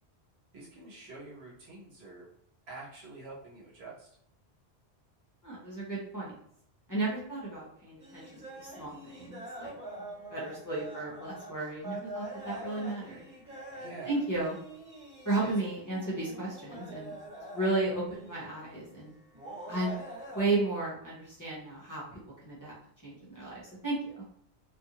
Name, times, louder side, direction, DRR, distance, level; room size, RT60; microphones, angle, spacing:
voice 1, 0.5-2.3 2.7-4.2 13.7-14.2 15.4-15.5, right 3 dB, 70° right, -6 dB, 1.3 m, -46 dB
voice 2, 5.4-6.3 6.9-9.7 10.3-13.2 14.0-14.6 15.2-17.1 17.5-19.1 19.7-20.0 20.3-22.7 23.0-24.1, right 2 dB, 20° left, -8 dB, 0.7 m, -34 dB
sound 1, 8.0-18.5 19.3-20.5, right 1 dB, 45° right, 1.6 m, -45 dB
2.6 x 2.5 x 2.8 m, 0.71 s
omnidirectional pair, 1.1 m